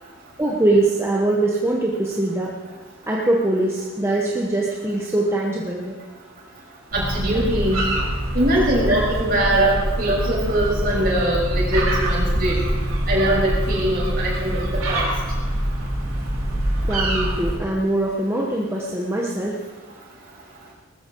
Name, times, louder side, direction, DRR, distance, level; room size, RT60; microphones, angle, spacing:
voice 1, 0.4-2.5 3.1-6.0 8.9-9.0 16.9-19.6, right 2 dB, 10° right, -3 dB, 1.3 m, -22 dB
voice 2, 6.9-7.8 8.3-12.6 13.1-15.1, right 1 dB, 45° right, -4 dB, 6.5 m, -22 dB
sound 1, 6.9-17.6, right 1 dB, 85° right, 3.9 m, -24 dB
19.0 x 14.0 x 4.7 m, 1.2 s
head